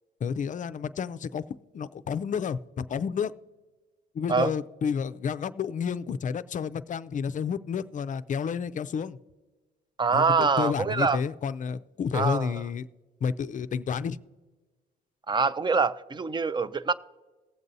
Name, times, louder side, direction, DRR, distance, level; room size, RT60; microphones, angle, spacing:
voice 1, 0.2-3.3 4.1-9.2 10.1-12.9 13.2-14.2, left 6 dB, 40° left, 0.4 m, -30 dB
voice 2, 10.0-11.2 12.1-12.5 15.3-16.9, right 4 dB, 25° right, 0.4 m, -25 dB
18.5 x 7.5 x 2.7 m
cardioid pair, 90°, 20 cm